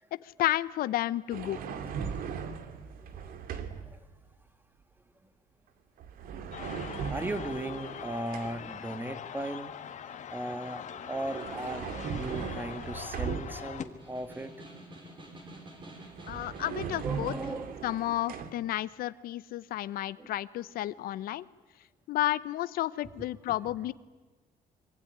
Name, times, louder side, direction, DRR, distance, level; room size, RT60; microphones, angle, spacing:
voice 1, 0.1-1.6 16.3-17.3 17.8-21.5 22.1-23.9, left 14 dB, 75° left, 16 dB, 0.8 m, -32 dB
sound 1, 1.3-4.0 6.0-8.8 10.9-13.8 15.8-15.9 16.1-18.5, right 6 dB, 75° right, 2.3 m, -38 dB
sound 2, 6.5-13.9, left 8 dB, 55° left, 1.8 m, -43 dB
voice 2, 7.1-9.8 10.3-14.5 17.0-17.7 20.2-20.3, right 1 dB, 15° right, 10 dB, 1.6 m, -37 dB
Snare drum, 13.8-17.7, right 1 dB, 30° right, 6.5 m, -49 dB
24.5 x 24.0 x 9.8 m, 1.3 s
cardioid pair, 120°, 15 cm